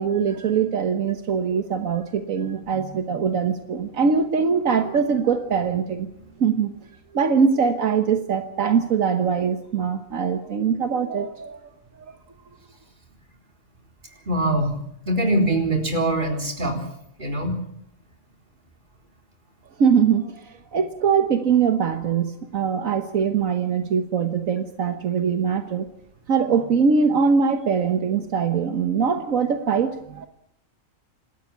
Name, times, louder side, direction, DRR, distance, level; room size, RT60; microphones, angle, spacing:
voice 1, 0.0-6.1 6.4-6.7 7.1-11.6 19.8-25.9 26.3-30.3, right 6 dB, 80° right, 8 dB, 1.6 m, -22 dB
voice 2, 14.3-14.7 15.1-16.8 17.2-17.6, right 1 dB, 40° right, 3 dB, 4.2 m, -22 dB
27.5 x 13.0 x 8.3 m, 0.72 s
omnidirectional pair, 1.4 m